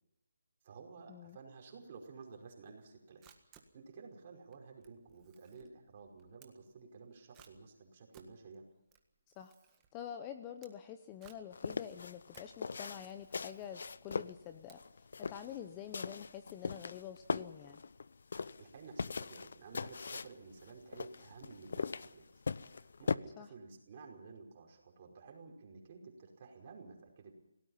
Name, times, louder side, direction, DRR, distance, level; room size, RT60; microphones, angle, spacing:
voice 1, 0.6-3.2 3.7-8.7 18.6-22.3 22.8-27.3, right 4 dB, 25° right, 1 dB, 5.2 m, -53 dB
Camera, 2.9-15.3, right 8 dB, 10° right, 1.6 m, -66 dB
voice 2, 9.9-17.8 23.4-23.5, left 9 dB, 15° left, 8 dB, 0.7 m, -47 dB
sound 1, 11.5-23.2, left 4 dB, 55° left, 0.8 m, -40 dB
28.0 x 18.0 x 5.7 m, 0.83 s
hypercardioid pair, 175°, 0 cm